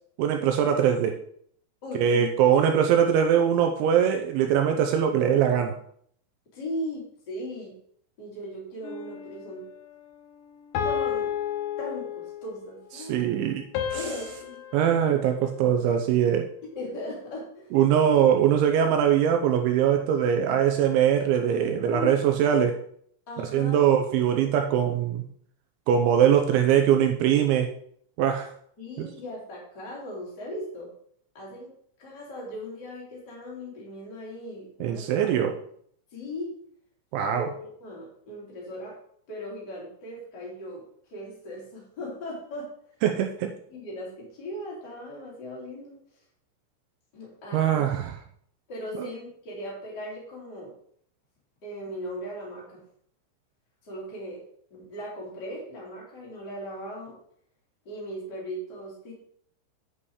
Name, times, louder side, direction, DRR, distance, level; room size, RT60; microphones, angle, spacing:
voice 1, 0.2-1.2 1.9-5.8 13.0-13.6 13.9-14.0 14.7-16.5 17.7-22.8 23.4-25.2 25.9-27.7 28.2-28.5 29.0-29.1 34.8-35.5 37.1-37.5 43.0-43.5 47.5-48.1 49.0-49.1, right 9 dB, 85° right, 5 dB, 2.7 m, -22 dB
voice 2, 1.8-2.4 6.5-7.8 8.2-9.7 10.8-11.3 11.8-13.4 13.9-14.6 16.7-17.7 21.9-22.2 22.5-22.6 23.3-23.9 26.3-26.4 28.8-30.9 31.3-31.7 32.0-35.5 36.1-36.5 37.3-39.0 39.3-42.7 43.7-46.0 47.1-47.9 48.7-50.7 51.6-52.8 53.8-54.4 54.7-57.1 57.8-59.1, equal, 25° left, -4 dB, 2.9 m, -38 dB
sound 1, 8.8-9.5 10.7-12.5 13.7-16.2, left 9 dB, 70° left, 3.2 m, -33 dB
10.0 x 5.5 x 4.8 m, 0.64 s
omnidirectional pair, 6.0 m